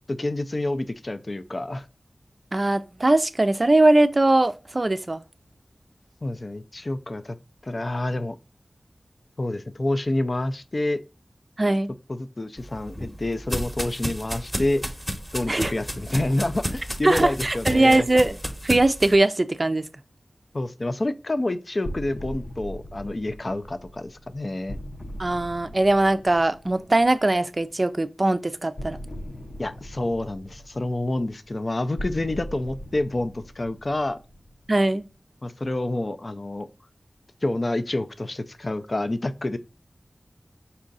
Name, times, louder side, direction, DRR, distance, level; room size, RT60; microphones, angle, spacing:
voice 1, 0.1-1.9 6.2-7.4 7.6-8.4 9.4-11.0 12.1-14.8 15.3-18.1 20.5-24.8 29.6-34.2 35.4-36.7 37.4-39.6, left 2 dB, 45° left, 0.4 m, -28 dB
voice 2, 2.5-5.2 11.6-11.9 15.5-15.7 17.0-18.4 18.6-19.8 25.2-29.0 34.7-35.1, right 2 dB, 40° right, 0.4 m, -20 dB
sound 1, 12.6-19.2, equal, 5° left, 0.9 m, -32 dB
sound 2, 21.8-27.6 28.8-35.0, equal, 70° left, 0.9 m, -40 dB
5.4 x 2.5 x 3.9 m
wide cardioid pair, 65°, 0 cm